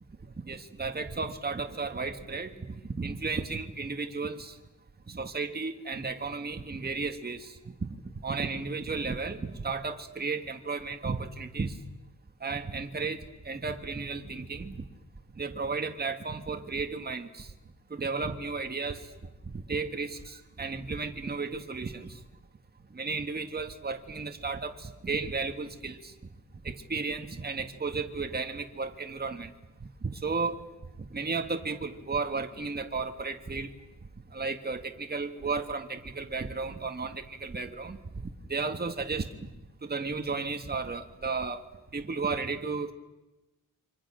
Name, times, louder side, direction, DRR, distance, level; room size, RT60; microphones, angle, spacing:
voice 1, 0.5-4.6 5.1-7.6 8.2-11.8 12.4-14.9 15.3-17.5 17.9-19.1 19.5-22.2 22.9-26.1 26.6-29.5 29.8-30.7 31.1-33.7 34.3-39.5 39.8-41.6 41.9-42.9, right 4 dB, 30° right, 6 dB, 1.8 m, -34 dB
29.5 x 26.0 x 6.4 m, 1.0 s
wide cardioid pair, 155°, 33 cm